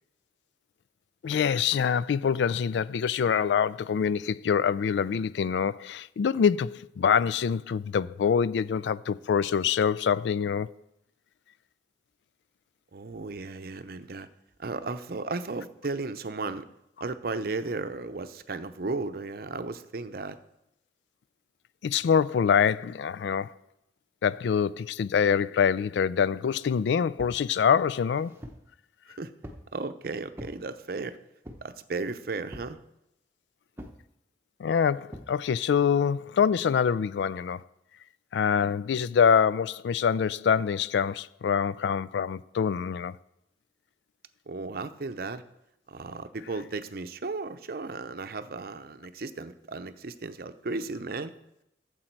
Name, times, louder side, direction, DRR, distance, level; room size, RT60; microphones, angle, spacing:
voice 1, 1.2-10.7 21.8-23.5 24.2-28.3 34.6-37.6 38.3-43.1, left 7 dB, 80° left, 0.3 m, -25 dB
voice 2, 12.9-14.3 14.6-16.7 17.0-20.4 29.2-29.3 29.7-31.1 31.6-32.8 44.5-45.4 45.9-51.3, right 3 dB, 55° right, 0.6 m, -35 dB
sound 1, 27.2-27.4 28.0-28.7 29.4-29.7 30.3-30.6 31.4-31.8 32.5-32.8 33.8-34.0 35.1-35.3, equal, 15° right, 0.8 m, -44 dB
13.0 x 7.6 x 4.6 m
head